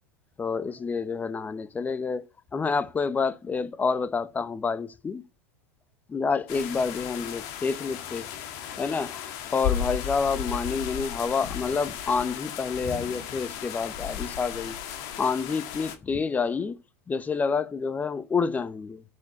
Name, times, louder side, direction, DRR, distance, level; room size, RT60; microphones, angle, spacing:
voice 1, 0.4-2.3 2.5-5.2 6.1-8.3 8.8-14.8 15.2-16.8 17.1-19.0, left 5 dB, 20° left, 1.0 m, -28 dB
sound 1, 6.5-16.0, left 9 dB, 55° left, 1.9 m, -35 dB
10.5 x 5.0 x 7.2 m
hypercardioid pair, 95°, 8 cm